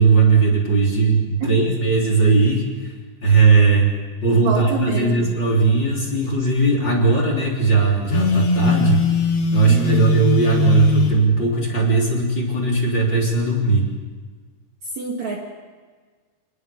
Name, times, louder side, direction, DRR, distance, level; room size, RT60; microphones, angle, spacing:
voice 1, 0.0-2.9 3.2-3.9 4.2-9.0 9.5-13.9, right 4 dB, 25° left, 0 dB, 3.7 m, -18 dB
voice 2, 4.3-5.4 9.6-10.1 14.8-15.4, right 5 dB, 50° right, 0 dB, 2.7 m, -27 dB
Telephone, 8.1-11.2, left 5 dB, 60° left, 4.6 m, -20 dB
27.0 x 19.5 x 7.0 m, 1.5 s
omnidirectional pair, 5.1 m